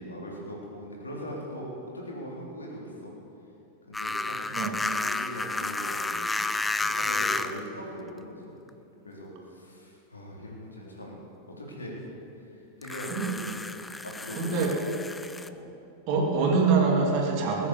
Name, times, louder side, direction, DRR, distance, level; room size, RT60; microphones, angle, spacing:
voice 1, 0.0-3.1 3.9-6.5 6.8-8.5 9.0-11.2 11.6-12.1 12.4-14.6 15.4-15.6, equal, 75° left, -3 dB, 3.5 m, -40 dB
sound 1, 3.9-7.7 8.7-8.8 12.8-15.5, left 3 dB, 10° left, 0.5 m, -31 dB
voice 2, 14.4-14.7 16.1-17.7, right 4 dB, 45° right, 0 dB, 2.6 m, -24 dB
20.0 x 8.5 x 7.1 m, 2.8 s
figure-of-eight pair, 90°, 0 cm